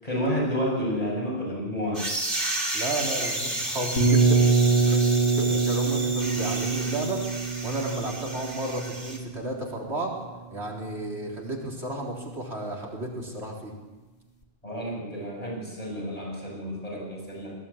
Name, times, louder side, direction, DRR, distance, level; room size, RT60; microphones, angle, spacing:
voice 1, 0.0-2.0 14.6-17.5, equal, 35° left, -3 dB, 7.8 m, -30 dB
sound 1, 1.9-9.2, right 1 dB, 50° right, 3.6 m, -32 dB
voice 2, 2.7-4.4 4.9-5.0 5.4-7.2 7.6-10.2 10.5-13.7, right 1 dB, 75° right, -1 dB, 4.1 m, -32 dB
sound 2, 4.0-9.7, right 4 dB, 70° left, 2.7 m, -24 dB
20.5 x 16.0 x 8.7 m, 1.2 s
omnidirectional pair, 1.1 m